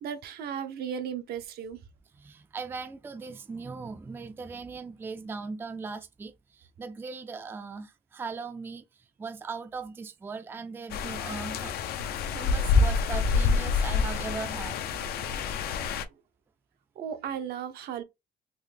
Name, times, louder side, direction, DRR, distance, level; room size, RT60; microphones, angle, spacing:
voice 1, 0.0-1.8 17.0-18.0, right 8 dB, 70° right, 0.6 m, -35 dB
voice 2, 2.1-11.8 12.3-14.8, right 4 dB, 15° right, 0.3 m, -39 dB
sound 1, 10.9-16.0, left 4 dB, 70° left, 0.5 m, -27 dB
3.7 x 2.0 x 3.2 m
cardioid pair, 110°, 17 cm